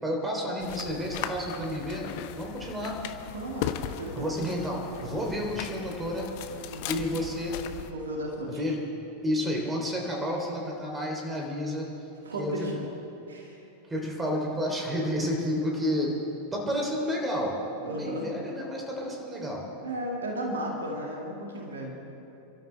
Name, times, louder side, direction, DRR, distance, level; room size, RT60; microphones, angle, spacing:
voice 1, 0.0-2.1 2.4-3.0 4.1-6.3 6.9-7.6 8.5-8.8 9.2-11.9 12.4-12.5 13.9-16.1 16.5-17.5 17.9-19.6, equal, 15° right, -1 dB, 3.4 m, -30 dB
sound 1, 0.6-7.9, left 10 dB, 45° left, 0.9 m, -38 dB
voice 2, 3.3-4.2 6.7-7.0 7.8-8.6 12.2-12.8 13.3-13.6 17.8-18.3 19.8-22.0, right 1 dB, 65° right, 0 dB, 2.3 m, -35 dB
30.0 x 13.0 x 3.5 m, 2.9 s
figure-of-eight pair, 90°, 0 cm